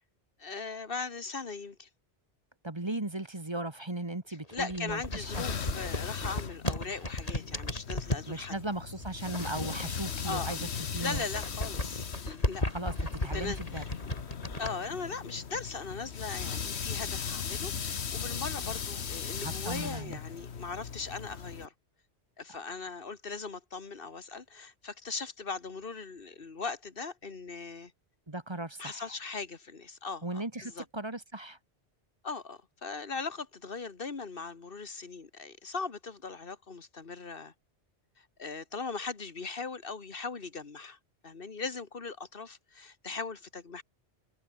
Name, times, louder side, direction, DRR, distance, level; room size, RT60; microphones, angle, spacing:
voice 1, 0.4-1.9 4.5-8.5 10.2-10.6 11.0-12.6 13.3-13.9 14.6-21.7 22.4-27.9 28.8-30.9 32.2-37.5 38.2-41.0 41.2-43.8, left 4 dB, 50° left, 2.0 m, -39 dB
voice 2, 2.6-5.5 8.3-11.2 12.7-13.8 19.4-20.2 28.3-29.1 30.2-31.6, right 2 dB, 25° right, 1.8 m, -37 dB
sound 1, 4.4-8.3 9.0-10.3 10.6-14.7, left 1 dB, 30° left, 4.0 m, -35 dB
sound 2, 4.9-21.7, left 6 dB, 65° left, 1.5 m, -38 dB
omnidirectional pair, 1.2 m